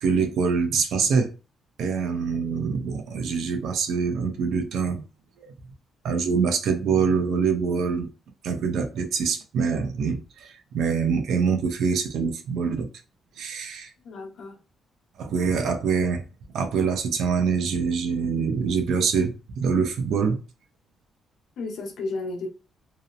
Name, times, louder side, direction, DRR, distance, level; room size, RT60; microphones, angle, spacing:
voice 1, 0.0-1.3 1.8-5.1 5.4-5.5 6.0-8.1 8.4-12.9 13.4-13.9 15.2-16.2 16.5-20.4, right 5 dB, 65° right, 0.5 m, -25 dB
voice 2, 14.0-14.6 21.6-22.5, left 3 dB, 60° left, 0.9 m, -33 dB
2.8 x 2.0 x 2.4 m
cardioid pair, 170°, 0 cm